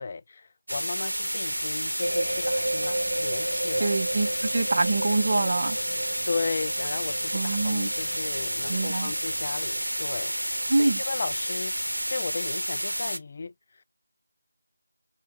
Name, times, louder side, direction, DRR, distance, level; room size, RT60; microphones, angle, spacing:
voice 1, 0.0-3.9 6.3-11.7 12.1-13.8, left 4 dB, 30° left, 0.3 m, -35 dB
sound 1, 0.7-13.2, equal, 85° right, 0.6 m, -30 dB
sound 2, 1.9-9.6, equal, ahead, 1.2 m, -52 dB
sound 3, 2.0-10.6 10.9-11.4, right 2 dB, 70° right, 2.2 m, -34 dB
voice 2, 3.8-5.8 7.3-7.9 8.7-9.1 10.7-11.0, right 3 dB, 45° right, 0.6 m, -25 dB
3.7 x 3.4 x 2.6 m
figure-of-eight pair, 165°, 0 cm